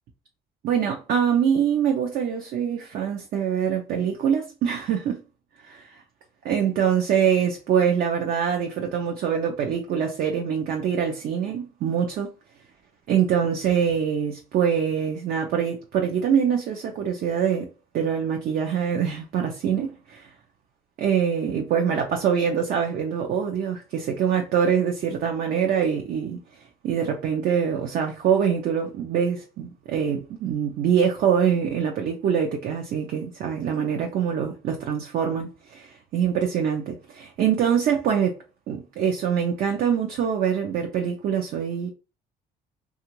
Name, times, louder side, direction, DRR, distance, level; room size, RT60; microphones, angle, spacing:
voice 1, 0.6-5.2 6.4-12.3 13.1-17.7 17.9-20.3 21.0-26.4 26.8-38.4 38.7-41.9, right 8 dB, 60° right, 0.5 m, -24 dB
2.8 x 2.3 x 2.9 m
cardioid pair, 110°, 17 cm